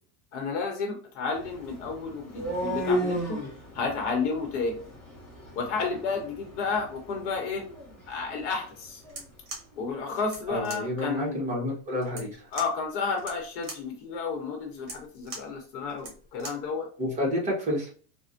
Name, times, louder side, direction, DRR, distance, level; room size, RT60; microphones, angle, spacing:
voice 1, 0.3-3.4 3.7-4.8 5.6-7.7 8.1-9.0 9.8-11.4 12.5-16.9, left 4 dB, 65° left, 3 dB, 0.9 m, -31 dB
sound 1, 1.3-9.3, equal, ahead, 0.7 m, -35 dB
sound 2, 9.0-16.7, right 3 dB, 40° right, 1.1 m, -44 dB
voice 2, 10.5-12.4 17.0-17.9, left 1 dB, 20° right, -3 dB, 1.0 m, -29 dB
4.3 x 2.1 x 2.5 m, 0.42 s
supercardioid pair, 155°, 38 cm